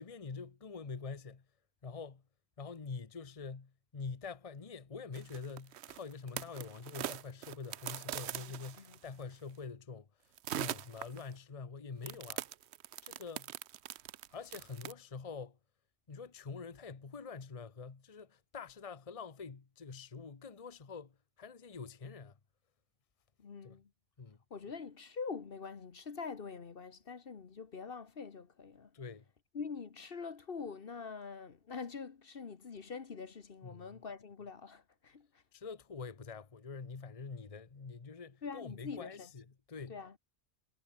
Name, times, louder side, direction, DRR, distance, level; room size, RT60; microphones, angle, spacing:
voice 1, 0.0-1.5 1.8-2.2 2.6-12.5 13.0-13.5 14.3-15.6 16.1-22.4 23.6-23.8 24.2-24.4 28.9-29.3 33.6-34.0 35.5-40.0, left 5 dB, 35° left, 1.1 m, -46 dB
sound 1, 5.1-9.2 10.4-11.3 12.0-14.9, right 12 dB, 75° right, 0.9 m, -42 dB
voice 2, 8.3-9.0 23.4-23.9 24.5-28.9 29.5-35.4 38.4-39.3 39.9-40.1, left 5 dB, 55° left, 1.4 m, -45 dB
omnidirectional pair, 1.1 m